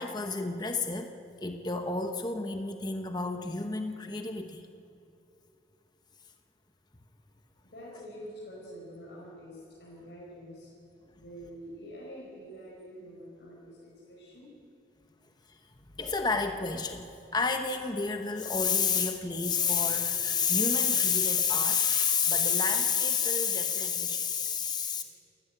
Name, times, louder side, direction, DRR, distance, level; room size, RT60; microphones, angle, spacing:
voice 1, 0.0-4.6 15.5-25.0, left 5 dB, 20° left, 6 dB, 1.0 m, -29 dB
voice 2, 7.6-10.7 11.2-14.5 24.9-25.0, equal, 65° left, -6 dB, 5.4 m, -46 dB
28.0 x 13.5 x 9.1 m, 2.6 s
head